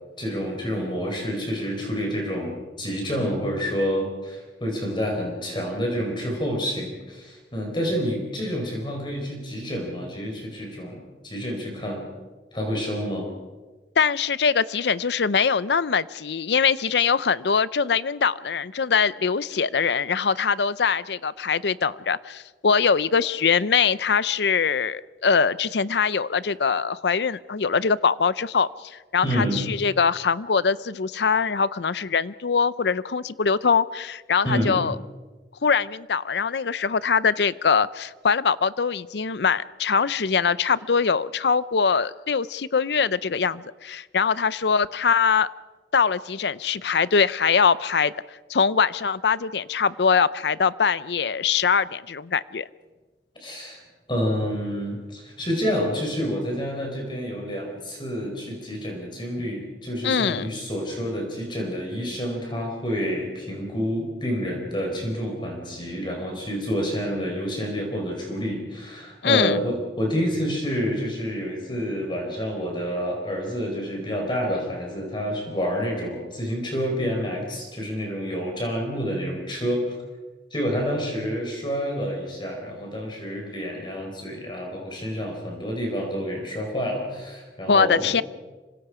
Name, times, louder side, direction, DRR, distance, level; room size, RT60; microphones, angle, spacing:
voice 1, 0.2-12.0 12.5-13.3 29.2-29.6 34.4-34.8 53.4-53.8 54.1-80.0 80.5-88.1, equal, 25° left, 1 dB, 4.8 m, -28 dB
voice 2, 14.0-35.0 35.6-45.5 45.9-48.1 48.5-52.7 60.0-60.5 69.2-69.6 87.7-88.2, left 6 dB, 70° left, 17 dB, 0.6 m, -22 dB
26.5 x 25.0 x 5.0 m, 1.3 s
head